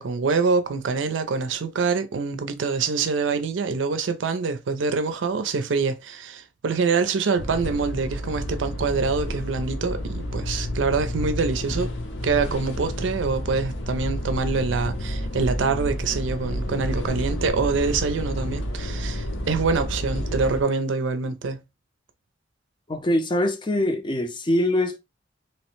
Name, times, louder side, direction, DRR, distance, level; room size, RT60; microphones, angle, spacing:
voice 1, 0.0-11.9 12.2-21.6, right 4 dB, 80° right, 0.5 m, -25 dB
sound 1, 7.4-20.6, equal, 80° left, 0.7 m, -30 dB
voice 2, 22.9-25.0, left 1 dB, 25° left, 0.5 m, -23 dB
2.9 x 2.1 x 3.0 m
head